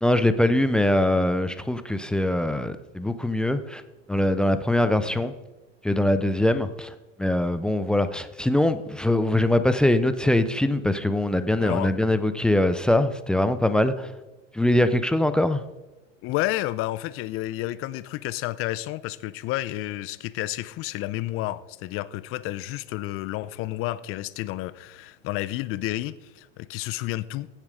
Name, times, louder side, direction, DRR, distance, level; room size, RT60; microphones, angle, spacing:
voice 1, 0.0-3.8 4.1-5.3 5.8-6.9 7.2-14.1 14.5-15.6, left 1 dB, 5° left, 0.3 m, -22 dB
voice 2, 11.6-11.9 16.2-27.5, left 16 dB, 35° left, 0.6 m, -31 dB
16.0 x 7.4 x 5.0 m
hypercardioid pair, 115°, 37 cm